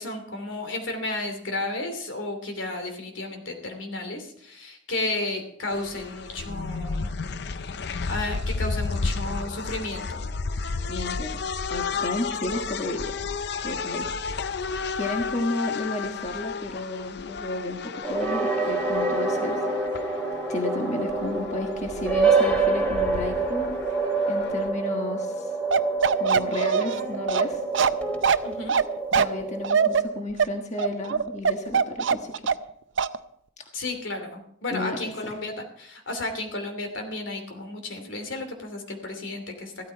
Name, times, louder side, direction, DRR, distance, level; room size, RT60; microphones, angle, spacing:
voice 1, 0.0-7.1 7.8-10.2 28.4-28.7 33.7-39.9, left 2 dB, 80° left, 5 dB, 2.8 m, -33 dB
sound 1, 5.7-24.7, left 4 dB, 60° left, 0.5 m, -33 dB
voice 2, 10.9-11.4 11.7-13.1 13.6-14.1 14.9-19.6 19.9-20.2 20.5-23.8 24.3-25.5 26.2-27.6 29.1-32.5 33.6-33.7 34.7-35.3, left 2 dB, 35° left, 3 dB, 1.4 m, -32 dB
sound 2, 18.0-30.0, right 3 dB, 5° left, 3.0 m, -27 dB
Bark, 25.7-32.7 33.0-33.2, right 6 dB, 75° right, 0.6 m, -22 dB
15.0 x 13.0 x 4.5 m, 0.66 s
head